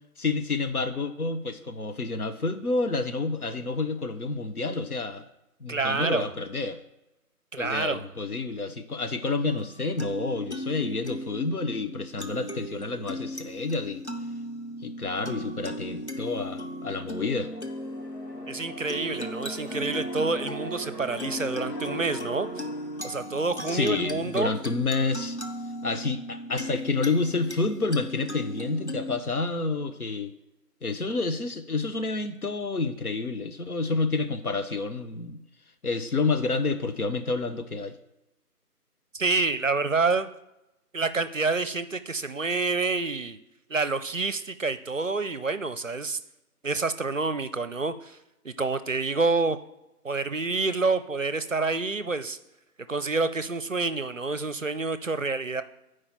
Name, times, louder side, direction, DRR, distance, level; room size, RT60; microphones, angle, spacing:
voice 1, 0.2-5.2 5.6-6.8 7.6-14.0 14.8-17.5 23.6-25.4 25.8-30.3 30.8-35.4 35.8-38.0, left 3 dB, 65° left, 8 dB, 1.0 m, -29 dB
voice 2, 5.7-6.3 7.5-8.1 18.5-22.5 23.0-24.5 39.1-40.3 40.9-43.4 43.7-46.2 46.6-48.2 48.4-49.6 50.0-52.4 52.9-55.6, right 3 dB, 55° right, 13 dB, 0.5 m, -28 dB
sound 1, 9.5-29.2, equal, 45° left, 0.6 m, -37 dB
sound 2, 16.6-24.4, left 1 dB, 85° left, 2.1 m, -44 dB
8.9 x 4.8 x 4.3 m, 0.94 s
figure-of-eight pair, 175°, 47 cm